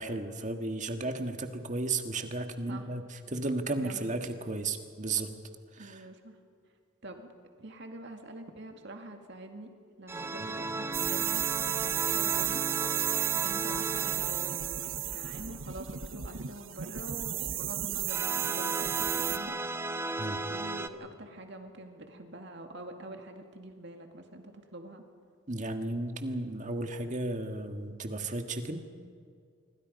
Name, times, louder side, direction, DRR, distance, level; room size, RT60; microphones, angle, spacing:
voice 1, 0.0-5.3 5.7-6.1 10.4-10.5 20.2-20.4 25.5-28.9, right 2 dB, 35° right, 6 dB, 1.7 m, -34 dB
voice 2, 3.8-4.2 5.8-6.4 7.0-7.3 7.6-9.7 10.0-12.6 13.0-19.6 20.5-25.0, right 1 dB, 60° right, 4 dB, 2.2 m, -45 dB
sound 1, 10.1-15.5 18.1-20.9, right 2 dB, 10° right, 0.7 m, -36 dB
sound 2, 10.9-19.4, right 13 dB, 75° right, 1.2 m, -33 dB
26.5 x 24.0 x 5.4 m, 2.2 s
head